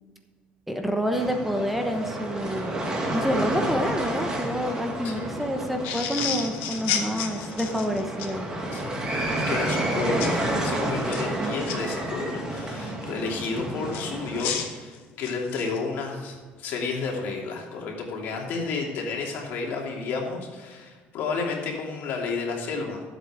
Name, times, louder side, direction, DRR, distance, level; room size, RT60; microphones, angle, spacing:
voice 1, 0.7-2.8 3.1-8.5, equal, 5° right, 4 dB, 1.1 m, -28 dB
sound 1, 1.1-14.5, right 1 dB, 20° right, 2.2 m, -30 dB
sound 2, 5.8-8.3 10.2-10.4 11.0-11.8 13.9-15.8, left 8 dB, 85° left, 1.6 m, -31 dB
voice 2, 8.7-23.0, left 4 dB, 65° left, 0 dB, 2.8 m, -31 dB
13.0 x 8.0 x 5.0 m, 1.5 s
cardioid pair, 135°, 4 cm